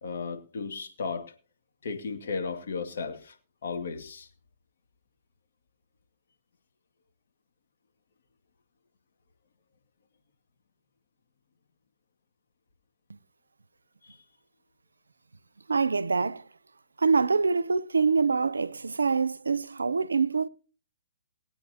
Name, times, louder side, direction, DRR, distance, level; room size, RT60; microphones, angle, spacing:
voice 1, 0.0-1.3 1.8-3.4 3.6-4.3 14.0-14.2, left 4 dB, 65° left, 2.0 m, -34 dB
voice 2, 15.7-16.5 17.0-20.5, right 4 dB, 90° right, 0.5 m, -25 dB
21.0 x 8.6 x 2.8 m
hypercardioid pair, 135°, 0 cm